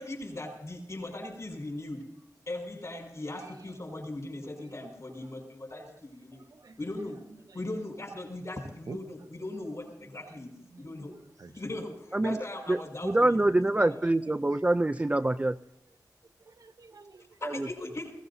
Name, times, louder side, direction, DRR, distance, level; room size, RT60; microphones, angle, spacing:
voice 1, 0.0-2.1 2.5-6.5 6.8-11.1 11.5-14.0 17.4-18.1, left 1 dB, 50° left, 1 dB, 5.1 m, -39 dB
voice 2, 6.3-6.8 8.9-9.0 10.3-10.4 10.7-11.0 11.4-11.5 13.6-13.9 16.5-17.3, right 4 dB, 65° right, 6 dB, 1.0 m, -47 dB
voice 3, 13.0-15.6 17.4-17.7, right 2 dB, 20° right, 8 dB, 0.4 m, -25 dB
20.5 x 17.0 x 2.7 m, 0.81 s
wide cardioid pair, 95°, 7 cm